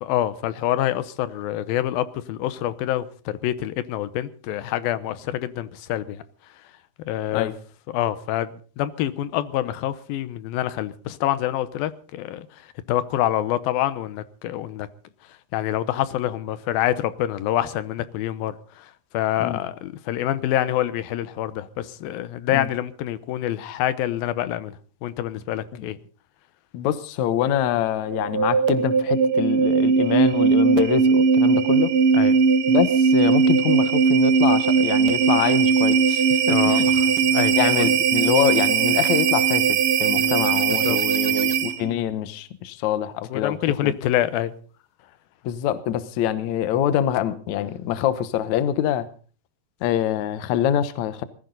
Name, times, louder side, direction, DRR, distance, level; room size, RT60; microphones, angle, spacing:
voice 1, 0.0-6.2 7.1-7.5 7.9-12.5 12.9-14.9 15.5-18.9 19.1-26.0 32.1-32.3 36.5-37.9 40.2-40.4 40.8-41.0 43.3-44.5, left 12 dB, 90° left, 2.7 m, -26 dB
voice 2, 26.7-31.9 32.7-36.9 37.6-43.9 45.4-49.1 49.8-51.2, left 10 dB, 65° left, 2.0 m, -25 dB
sound 1, 28.0-41.9, right 5 dB, 80° right, 1.2 m, -19 dB
20.5 x 15.0 x 4.0 m
omnidirectional pair, 4.1 m